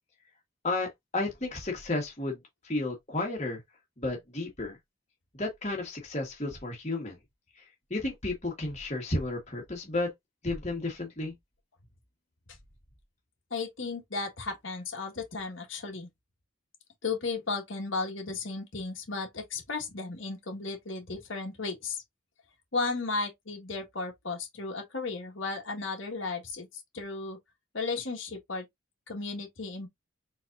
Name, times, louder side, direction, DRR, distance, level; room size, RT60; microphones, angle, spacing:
voice 1, 0.6-2.4 2.6-3.6 4.0-4.8 5.4-7.2 7.9-10.1 10.4-11.3, left 2 dB, 35° left, 1.6 m, -32 dB
voice 2, 13.5-16.1 17.0-22.0 22.7-27.4 27.7-28.6 29.1-29.9, left 3 dB, 70° left, 1.6 m, -34 dB
4.2 x 4.0 x 2.6 m
head